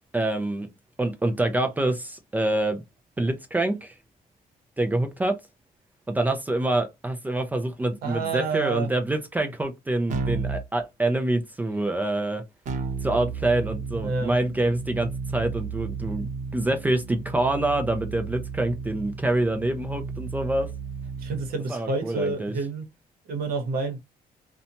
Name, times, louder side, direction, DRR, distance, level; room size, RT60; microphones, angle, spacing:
voice 1, 0.1-0.7 1.0-2.8 3.2-3.9 4.8-5.4 6.1-12.4 13.0-20.7 21.7-22.5, right 2 dB, 10° right, 0.3 m, -26 dB
voice 2, 8.0-8.9 14.0-14.3 21.2-22.8 23.3-24.0, right 4 dB, 85° right, 0.8 m, -28 dB
Keyboard (musical), 10.1-10.7 12.6-21.5, right 5 dB, 55° right, 0.7 m, -33 dB
2.7 x 2.2 x 2.8 m
cardioid pair, 180°, 15 cm